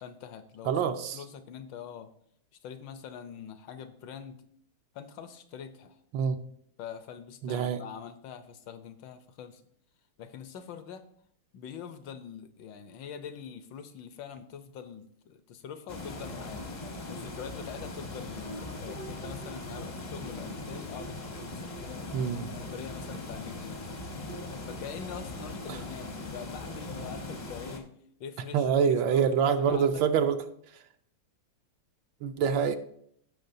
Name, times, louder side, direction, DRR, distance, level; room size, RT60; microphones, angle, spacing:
voice 1, 0.0-2.1 2.6-4.4 4.9-6.0 6.8-9.6 10.2-11.1 11.5-16.6 17.1-22.0 22.5-23.8 24.7-27.9 28.2-30.0 32.6-32.7, left 7 dB, 75° left, 10 dB, 1.3 m, -44 dB
voice 2, 0.6-1.2 6.1-6.4 7.4-7.8 22.1-22.5 25.7-25.8 28.5-30.4 32.2-32.8, right 7 dB, 80° right, 8 dB, 1.4 m, -26 dB
sound 1, 15.9-27.8, left 2 dB, 40° left, 0.6 m, -40 dB
15.5 x 5.9 x 2.7 m, 0.67 s
omnidirectional pair, 2.2 m